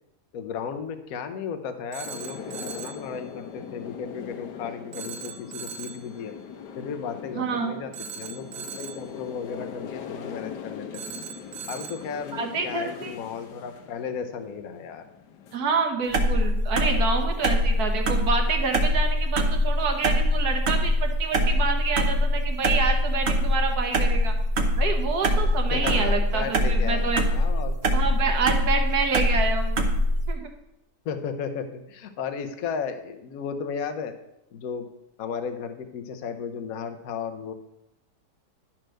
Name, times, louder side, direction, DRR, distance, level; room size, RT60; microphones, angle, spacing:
voice 1, 0.3-6.4 6.7-11.0 11.7-15.1 25.7-28.0 31.0-34.1 34.5-34.9 35.2-37.5, left 6 dB, 60° left, 8 dB, 1.2 m, -34 dB
Telephone, 1.9-3.1 4.9-6.1 7.9-9.1 10.9-12.1, right 8 dB, 85° right, 1.3 m, -39 dB
sound 1, 2.0-15.6, left 7 dB, 80° left, 1.4 m, -41 dB
voice 2, 7.3-7.8 12.3-13.1 15.5-24.3 24.8-27.2 27.9-29.8 30.3-30.5, right 4 dB, 65° right, 4 dB, 1.5 m, -28 dB
sound 2, 16.1-30.3, equal, 50° right, 0.9 m, -23 dB
10.5 x 4.5 x 6.3 m, 0.86 s
omnidirectional pair, 1.8 m